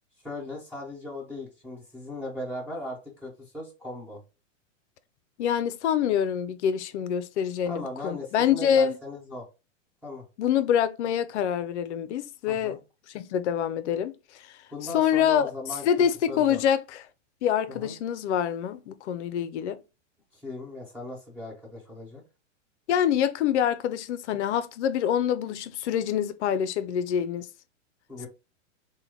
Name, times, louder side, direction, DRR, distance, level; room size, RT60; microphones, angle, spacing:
voice 1, 0.2-4.2 7.7-9.4 10.0-10.2 12.5-12.8 14.7-15.8 16.3-16.6 17.7-17.9 20.3-22.2 28.1-28.3, left 1 dB, 5° right, 1.4 m, -38 dB
voice 2, 5.4-9.0 10.4-12.8 13.1-14.5 14.9-15.5 15.8-17.0 17.4-19.8 22.9-27.5, left 9 dB, 65° left, 0.5 m, -26 dB
3.2 x 2.2 x 3.6 m
supercardioid pair, 150°, 38 cm